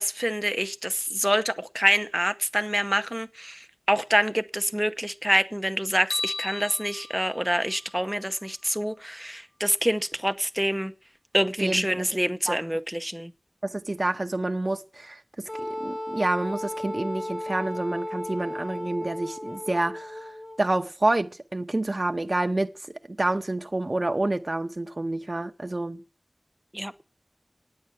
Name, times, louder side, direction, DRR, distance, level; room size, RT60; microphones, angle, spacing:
voice 1, 0.0-10.9 11.3-13.3 26.7-26.9, equal, 5° right, 0.8 m, -26 dB
sound 1, 6.1-8.4, left 2 dB, 85° left, 2.0 m, -35 dB
voice 2, 11.6-12.1 12.5-12.6 13.6-22.7 23.1-26.0, right 2 dB, 55° right, 0.7 m, -28 dB
Wind instrument woodwind instrument, 15.5-20.6, left 1 dB, 15° left, 2.0 m, -35 dB
9.4 x 8.7 x 8.3 m
wide cardioid pair, 50°, 0 cm